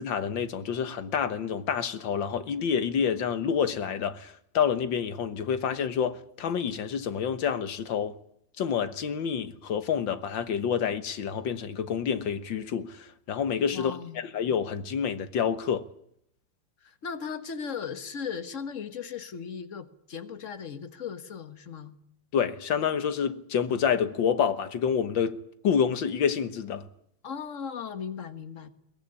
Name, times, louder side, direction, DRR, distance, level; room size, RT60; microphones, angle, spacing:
voice 1, 0.0-8.2 8.6-15.9 22.3-26.9, left 7 dB, 75° left, 1.9 m, -28 dB
voice 2, 13.7-14.3 16.8-21.9 27.2-28.7, left 6 dB, 45° left, 1.6 m, -37 dB
22.5 x 17.5 x 9.9 m
omnidirectional pair, 2.1 m